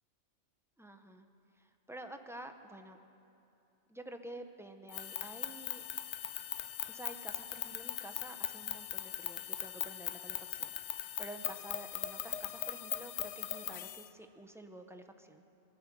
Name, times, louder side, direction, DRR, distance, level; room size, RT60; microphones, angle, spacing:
voice 1, 0.8-1.3 1.6-3.0 3.9-5.8 6.9-15.4, right 1 dB, 5° right, 6 dB, 0.4 m, -50 dB
sound 1, 4.9-14.1, left 12 dB, 85° left, 0.9 m, -40 dB
21.0 x 11.5 x 6.0 m, 2.8 s
omnidirectional pair, 1.2 m